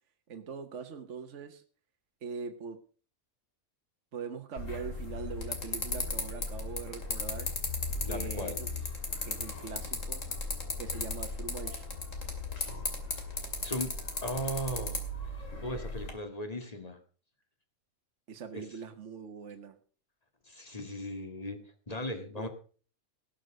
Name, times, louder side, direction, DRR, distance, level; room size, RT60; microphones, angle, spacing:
voice 1, 0.3-1.6 2.2-2.8 4.1-7.5 8.0-8.7 9.2-10.3 10.8-11.9 18.3-19.8 22.3-22.5, right 5 dB, 60° right, 6 dB, 1.3 m, -42 dB
sound 1, 4.6-16.1, left 3 dB, 65° left, 2.9 m, -36 dB
voice 2, 8.0-8.6 13.6-13.9 14.2-15.0 15.6-17.0 18.5-18.6 20.5-22.5, equal, 25° left, 6 dB, 2.1 m, -37 dB
18.5 x 6.6 x 6.4 m, 0.41 s
omnidirectional pair, 1.4 m